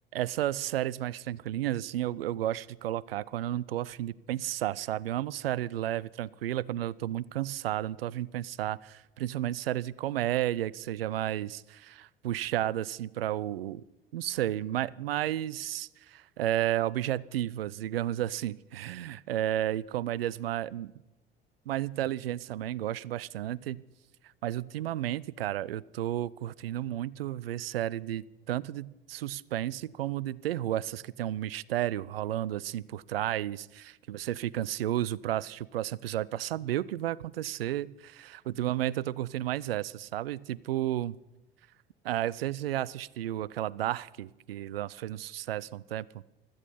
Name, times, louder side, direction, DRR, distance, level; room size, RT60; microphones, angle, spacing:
voice 1, 0.1-13.8 14.1-20.9 21.7-23.8 24.4-41.2 42.0-46.1, right 13 dB, 75° right, 24 dB, 0.5 m, -32 dB
16.0 x 13.0 x 5.6 m, 1.0 s
figure-of-eight pair, 60°, 30 cm